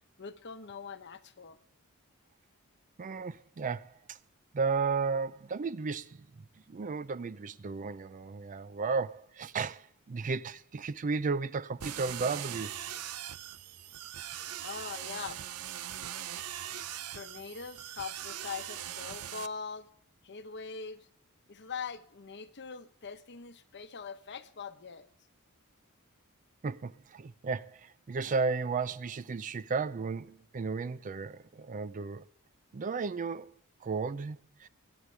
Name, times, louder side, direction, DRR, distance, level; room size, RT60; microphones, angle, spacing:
voice 1, 0.2-1.6 14.3-14.4 14.6-15.4 17.1-19.9 20.2-21.1 21.5-25.1, left 5 dB, 50° left, 0.9 m, -42 dB
voice 2, 3.0-4.2 4.5-6.3 6.7-12.7 26.6-32.3 32.7-33.5 33.8-34.7, right 4 dB, 35° right, 0.4 m, -34 dB
sound 1, 11.8-19.5, right 11 dB, 85° right, 0.6 m, -41 dB
22.5 x 9.6 x 3.3 m
head